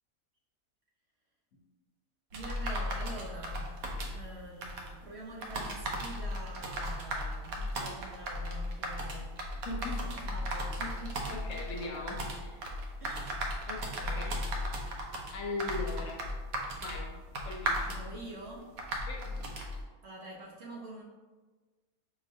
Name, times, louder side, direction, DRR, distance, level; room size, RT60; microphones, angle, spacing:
voice 1, 2.3-11.2 13.0-13.4 13.7-14.4 15.9-16.1 17.9-18.7 20.0-21.0, right 2 dB, 65° right, -3 dB, 0.7 m, -46 dB
sound 1, 2.3-19.8, equal, 80° right, 1.1 m, -36 dB
voice 2, 9.6-10.1 11.3-12.6 13.7-14.4 15.3-16.2 16.8-17.1 17.4-18.0 19.1-19.7, left 3 dB, 70° left, 0 dB, 0.9 m, -40 dB
5.5 x 2.4 x 2.5 m, 1.3 s
omnidirectional pair, 1.5 m